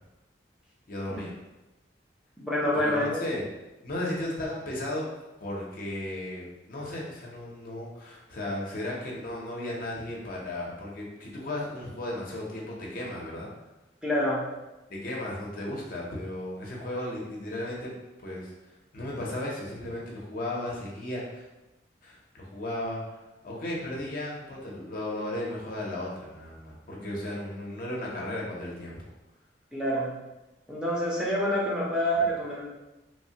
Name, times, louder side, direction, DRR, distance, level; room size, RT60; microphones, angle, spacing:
voice 1, 0.9-1.3 2.7-3.5 3.8-5.1 5.4-13.5 14.9-17.9 18.2-18.5 18.9-21.4 22.0-29.0, left 1 dB, 50° left, -3 dB, 0.6 m, -35 dB
voice 2, 2.4-3.2 14.0-14.4 29.7-30.1 30.7-32.8, equal, 5° right, -6 dB, 0.5 m, -27 dB
3.0 x 2.1 x 2.7 m, 1.0 s
head